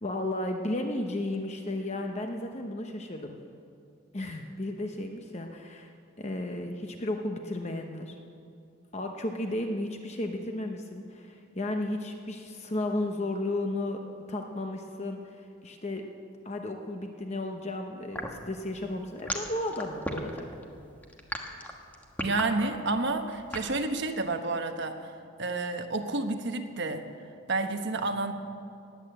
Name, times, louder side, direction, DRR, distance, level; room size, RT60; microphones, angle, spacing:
voice 1, 0.0-3.4 4.1-5.9 6.2-8.2 8.9-14.0 14.3-16.0 16.4-20.5, left 1 dB, 30° left, 4 dB, 0.8 m, -34 dB
sound 1, 18.1-23.7, left 1 dB, 10° left, 1.2 m, -36 dB
voice 2, 22.2-25.1 25.4-27.0 27.5-28.3, right 3 dB, 55° right, 6 dB, 1.1 m, -30 dB
19.5 x 8.8 x 7.8 m, 2.4 s
head